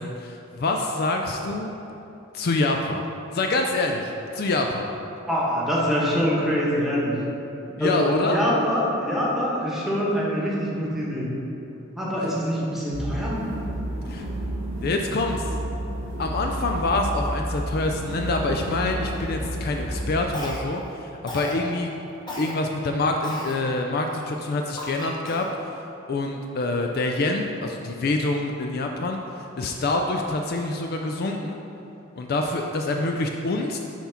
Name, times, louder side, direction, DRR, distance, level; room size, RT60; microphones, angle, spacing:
voice 1, 0.0-1.7 2.3-3.0 3.3-4.9 7.8-8.4 14.0-14.3 14.8-15.5 16.2-21.9 22.4-31.6 32.2-33.8, left 2 dB, 50° left, 3 dB, 0.4 m, -26 dB
voice 2, 5.3-7.2 7.7-11.3 11.9-13.4, equal, ahead, -6 dB, 1.1 m, -24 dB
sound 1, 12.9-20.2, right 1 dB, 85° right, 1.2 m, -31 dB
Cough, 20.3-20.9 21.3-21.6 22.3-22.5 23.2-23.6 24.1-24.2 24.8-25.5, left 1 dB, 20° left, 1.0 m, -35 dB
5.8 x 4.3 x 5.7 m, 3.0 s
head